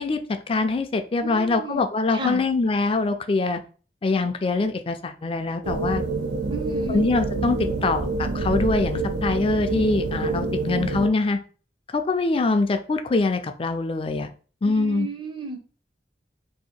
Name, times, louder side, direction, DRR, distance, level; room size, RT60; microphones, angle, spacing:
voice 1, 0.0-3.6 4.0-6.0 6.9-11.4 11.9-14.3 14.6-15.1, left 3 dB, 30° left, 7 dB, 0.4 m, -24 dB
voice 2, 1.2-1.8 2.1-2.4 6.5-7.0 14.6-15.6, right 2 dB, 25° right, 4 dB, 0.6 m, -33 dB
sound 1, 5.6-11.1, right 3 dB, 80° right, 0.5 m, -27 dB
2.8 x 2.6 x 4.2 m, 0.39 s
head